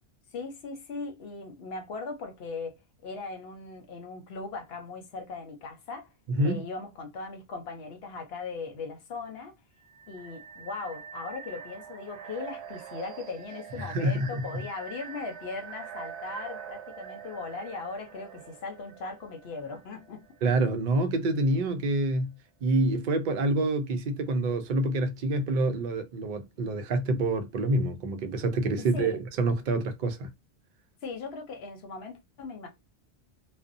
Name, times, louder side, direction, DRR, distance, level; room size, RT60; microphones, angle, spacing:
voice 1, 0.3-2.8 3.0-6.1 6.4-9.6 10.1-20.2 28.8-29.2 31.0-32.7, left 4 dB, 70° left, 0.9 m, -39 dB
voice 2, 6.3-6.6 13.8-14.4 20.4-22.3 22.6-30.3, right 2 dB, 60° right, 0.6 m, -27 dB
sound 1, 9.8-20.6, right 7 dB, 85° right, 0.9 m, -44 dB
2.5 x 2.1 x 2.5 m
omnidirectional pair, 1.1 m